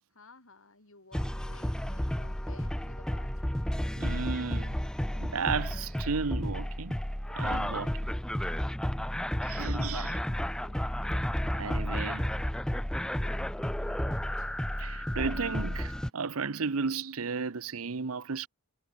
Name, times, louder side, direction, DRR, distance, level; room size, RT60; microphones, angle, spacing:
voice 1, 0.1-3.7 8.4-8.5 9.6-10.8 13.5-14.6, left 3 dB, 65° left, 5.4 m, -56 dB
sound 1, 1.1-16.1, equal, 5° left, 0.4 m, -32 dB
voice 2, 4.0-4.8 5.2-6.9 7.4-8.2 9.4-10.2 11.6-12.3 14.8-18.5, right 5 dB, 75° right, 0.8 m, -34 dB
head